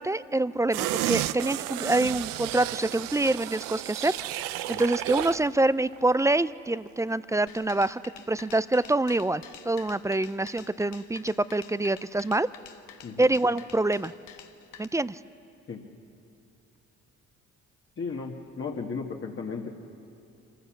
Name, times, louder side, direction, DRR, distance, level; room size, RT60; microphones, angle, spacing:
voice 1, 0.0-4.1 4.7-8.0 8.3-12.5 13.2-14.1 14.8-15.2, right 2 dB, 10° right, 17 dB, 0.4 m, -26 dB
sound 1, 0.7-5.5 5.8-5.9, right 15 dB, 85° right, 0.5 m, -32 dB
sound 2, 7.5-14.8, left 9 dB, 80° left, 1.1 m, -48 dB
voice 2, 18.0-19.7, left 5 dB, 40° left, -1 dB, 1.6 m, -35 dB
25.5 x 15.0 x 7.2 m, 2.7 s
supercardioid pair, 65°, 32 cm